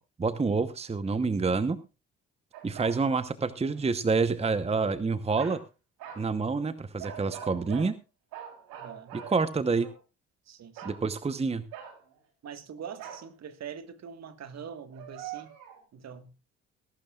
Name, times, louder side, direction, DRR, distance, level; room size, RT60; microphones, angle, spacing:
voice 1, 0.2-1.8 2.6-5.6 6.2-7.9 9.1-9.9 10.8-11.6, right 4 dB, 20° right, 0.9 m, -28 dB
sound 1, 2.5-3.0 3.6-3.8 5.3-5.6 6.0-6.3 7.0-7.9 8.3-10.0 10.8-11.0 11.7-12.1 13.0-13.3 14.9-15.8, right 10 dB, 75° right, 3.6 m, -43 dB
voice 2, 8.7-9.2 10.5-10.8 12.4-15.5 15.9-16.3, right 7 dB, 50° right, 1.6 m, -43 dB
21.5 x 12.0 x 2.4 m
hypercardioid pair, 60°, 34 cm